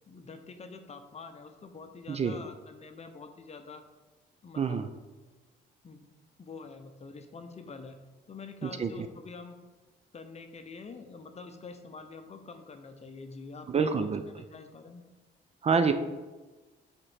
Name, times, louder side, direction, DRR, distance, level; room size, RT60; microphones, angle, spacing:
voice 1, 0.1-3.8 4.4-4.8 5.8-6.0 6.4-8.0 8.3-9.6 10.1-13.9 14.3-15.0, left 4 dB, 35° left, 7 dB, 0.6 m, -46 dB
voice 2, 4.6-4.9 8.6-8.9 13.7-14.2 15.6-15.9, right 5 dB, 30° right, 9 dB, 0.4 m, -27 dB
4.8 x 4.3 x 4.9 m, 1.2 s
cardioid pair, 90°, 20 cm